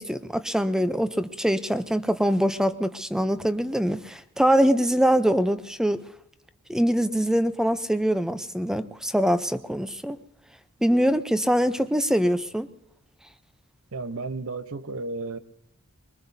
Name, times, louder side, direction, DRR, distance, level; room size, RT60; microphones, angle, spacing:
voice 1, 0.0-6.0 6.7-10.2 10.8-12.7, equal, 5° right, 0.6 m, -23 dB
voice 2, 13.9-15.4, right 3 dB, 65° right, 0.8 m, -33 dB
23.5 x 22.0 x 2.7 m
head